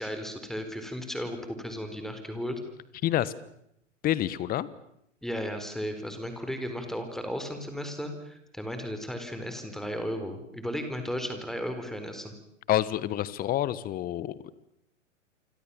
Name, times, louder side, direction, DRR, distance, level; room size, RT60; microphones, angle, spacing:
voice 1, 0.0-2.6 5.2-12.3, equal, ahead, 7 dB, 4.3 m, -35 dB
voice 2, 3.0-3.3 4.0-4.7 12.7-14.3, left 13 dB, 25° left, 19 dB, 1.3 m, -27 dB
28.5 x 25.5 x 7.2 m, 0.77 s
figure-of-eight pair, 105°, 38 cm